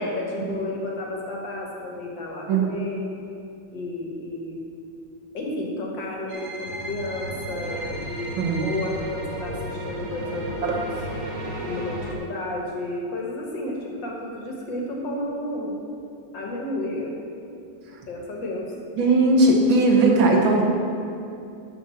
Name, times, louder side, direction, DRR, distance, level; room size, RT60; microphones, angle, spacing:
voice 1, 0.0-3.0 3.7-4.6 5.3-10.9 11.6-15.8 16.3-17.1 18.1-18.7, left 1 dB, 70° left, -1 dB, 2.2 m, -32 dB
voice 2, 2.5-2.8 8.4-8.7 10.6-10.7 17.9-18.0 19.0-20.6, right 2 dB, 80° right, 0 dB, 2.0 m, -18 dB
sound 1, 6.3-12.1, right 1 dB, 50° right, 1.4 m, -33 dB
13.0 x 5.4 x 5.8 m, 2.6 s
omnidirectional pair, 2.1 m